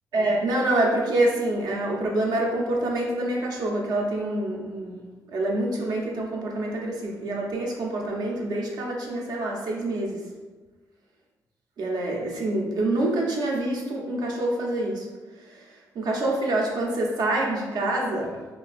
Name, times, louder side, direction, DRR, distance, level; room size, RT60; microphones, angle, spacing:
voice 1, 0.1-5.0 5.3-10.2 11.8-15.1 15.9-18.3, right 1 dB, 75° right, -1 dB, 0.6 m, -26 dB
3.1 x 2.2 x 2.4 m, 1.3 s
cardioid pair, 85°, 7 cm